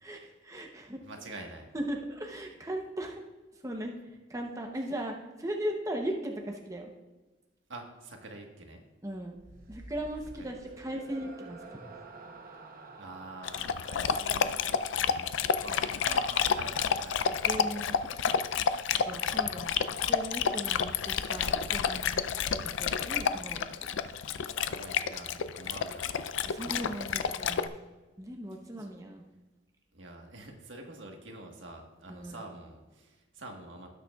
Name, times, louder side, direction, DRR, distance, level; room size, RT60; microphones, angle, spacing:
voice 1, 0.0-1.0 1.7-3.2 3.6-3.9 4.3-5.1 5.4-6.9 9.0-9.3 9.7-11.6 15.7-15.8 17.4-17.9 18.2-18.3 19.0-22.2 22.5-23.7 26.4-27.8 28.2-29.3 32.1-32.4, right 1 dB, 15° right, 2 dB, 0.7 m, -38 dB
voice 2, 1.0-1.6 4.8-4.9 7.7-8.8 10.4-10.5 13.0-17.9 24.6-26.4 28.5-28.9 29.9-33.9, right 2 dB, 75° right, 2 dB, 1.4 m, -47 dB
sound 1, 9.4-16.7, right 2 dB, 50° right, 0.9 m, -50 dB
Dog, 13.4-27.7, left 7 dB, 75° left, 0.4 m, -30 dB
18.0 x 6.6 x 2.3 m, 1.2 s
head